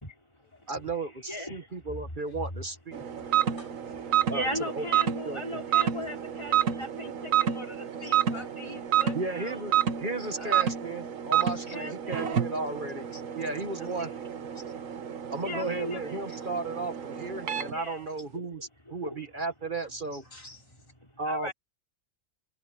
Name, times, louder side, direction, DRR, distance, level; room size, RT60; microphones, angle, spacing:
voice 1, 0.0-0.9 1.3-2.0 3.0-3.6 4.1-9.6 10.4-10.7 11.7-12.5 13.8-14.1 15.0-15.1 15.4-16.2 17.7-19.2 21.0-21.5, left 1 dB, 20° left, 4.5 m, -39 dB
voice 2, 0.7-3.0 4.3-4.8 5.2-5.4 9.1-13.1 13.3-14.1 15.3-20.2 21.2-21.5, right 3 dB, 40° right, 1.5 m, -34 dB
sound 1, 2.9-17.8, right 9 dB, 90° right, 1.5 m, -30 dB
voice 3, 3.5-4.2 7.9-9.0 11.5-11.8 13.1-13.2 14.6-14.7 16.3-16.5 20.1-20.8, left 1 dB, 90° left, 8.0 m, -52 dB
omnidirectional pair, 1.3 m